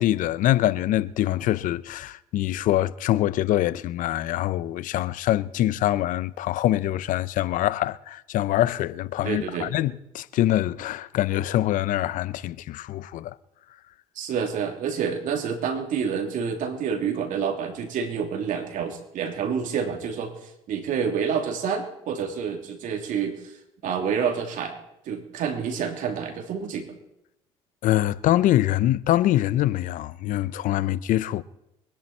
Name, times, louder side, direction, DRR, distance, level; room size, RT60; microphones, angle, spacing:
voice 1, 0.0-13.3 27.8-31.4, left 14 dB, 65° left, 0.6 m, -24 dB
voice 2, 9.2-9.7 14.2-20.3 20.7-23.5 23.8-24.7 25.1-26.9, right 6 dB, 65° right, 3.1 m, -28 dB
24.0 x 10.5 x 4.4 m
supercardioid pair, 75°, 14 cm